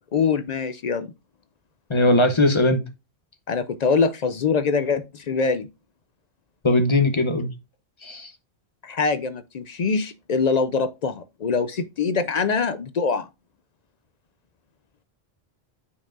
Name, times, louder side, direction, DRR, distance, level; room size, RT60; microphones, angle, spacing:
voice 1, 0.1-1.1 3.5-5.7 8.8-13.3, left 5 dB, 55° left, 0.5 m, -24 dB
voice 2, 1.9-2.8 6.6-7.5 8.0-8.3, left 2 dB, 30° left, 0.8 m, -19 dB
8.6 x 4.5 x 2.5 m
omnidirectional pair, 1.1 m